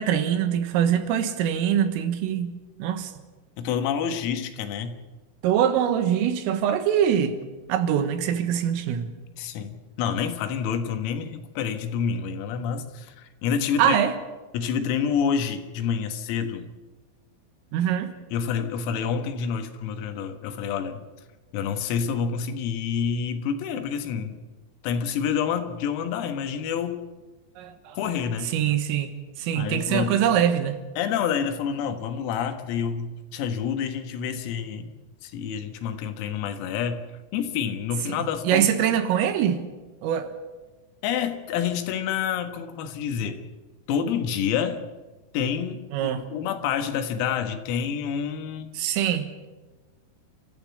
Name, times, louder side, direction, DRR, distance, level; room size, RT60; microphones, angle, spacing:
voice 1, 0.0-2.5 2.8-3.1 5.4-7.4 7.7-9.2 13.8-14.1 17.7-18.1 27.6-28.0 28.5-30.8 38.1-39.6 40.0-40.3 45.9-46.3 48.8-49.3, right 9 dB, 85° right, 4.0 m, -23 dB
voice 2, 3.6-5.0 9.4-14.0 14.5-16.7 18.3-21.0 21.5-24.4 24.8-27.1 28.0-28.5 29.5-30.2 31.0-34.9 35.2-37.0 37.3-39.0 41.0-43.4 43.9-44.8 45.3-48.7, left 7 dB, 90° left, 4.2 m, -28 dB
29.5 x 14.0 x 8.3 m
omnidirectional pair, 5.9 m